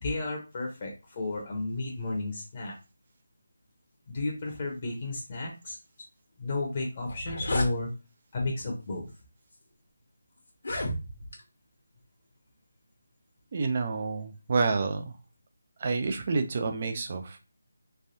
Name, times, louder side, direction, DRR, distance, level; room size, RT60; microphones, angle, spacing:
voice 1, 0.0-2.7 4.1-5.8 6.4-7.9 8.3-9.1, left 2 dB, 30° left, -1 dB, 0.8 m, -32 dB
sound 1, 7.0-7.7 8.6-8.8 9.5-9.6 10.5-11.4, left 1 dB, 65° left, 1.0 m, -33 dB
voice 2, 13.5-15.1 15.8-17.4, right 4 dB, 35° right, 6 dB, 0.5 m, -29 dB
3.3 x 2.2 x 2.7 m, 0.30 s
figure-of-eight pair, 170°, 0 cm